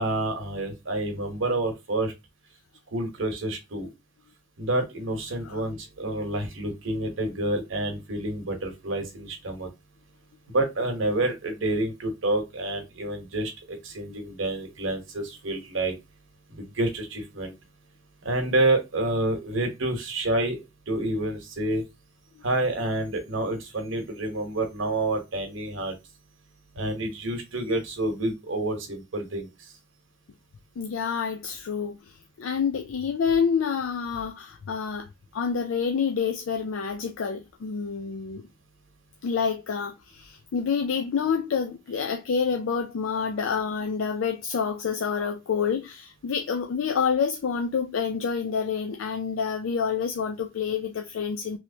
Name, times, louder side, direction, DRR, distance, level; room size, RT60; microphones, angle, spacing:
voice 1, 0.0-2.1 2.9-3.9 4.6-9.7 10.5-16.0 16.5-17.6 18.2-20.6 20.9-21.8 22.4-25.9 26.7-29.7, right 2 dB, 75° right, 1.0 m, -28 dB
voice 2, 30.8-38.5 39.2-51.6, left 6 dB, 85° left, 0.4 m, -28 dB
3.1 x 3.0 x 2.7 m
head